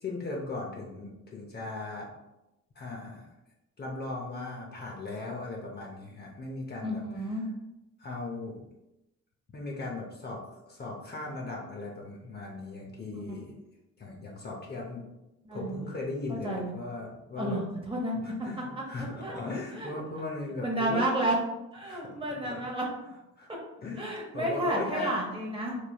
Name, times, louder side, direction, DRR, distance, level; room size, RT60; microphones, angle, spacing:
voice 1, 0.0-2.1 2.7-3.3 3.8-7.0 8.0-8.6 9.5-10.4 10.7-13.5 14.0-15.0 15.5-17.6 18.2-21.0 21.8-22.0 22.4-22.6 23.4-23.5 23.8-25.2, left 3 dB, 35° left, -2 dB, 0.7 m, -38 dB
voice 2, 6.8-7.5 15.4-15.9 16.4-16.7 17.4-18.2 19.0-19.4 19.7-19.9 20.6-21.4 21.7-22.9 24.0-25.8, right 1 dB, 20° right, -2 dB, 0.8 m, -31 dB
3.2 x 3.1 x 2.3 m, 0.95 s
cardioid pair, 90°, 30 cm